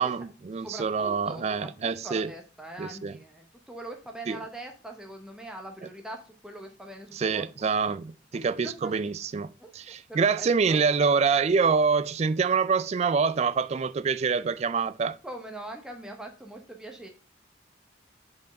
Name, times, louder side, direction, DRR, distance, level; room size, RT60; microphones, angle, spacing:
voice 1, 0.0-2.3 2.8-3.1 4.3-4.4 7.1-15.2, right 5 dB, 35° right, 0.3 m, -26 dB
voice 2, 0.6-7.4 8.3-8.9 9.6-10.8 15.2-17.1, right 1 dB, 5° right, 0.8 m, -42 dB
5.2 x 4.6 x 5.3 m
head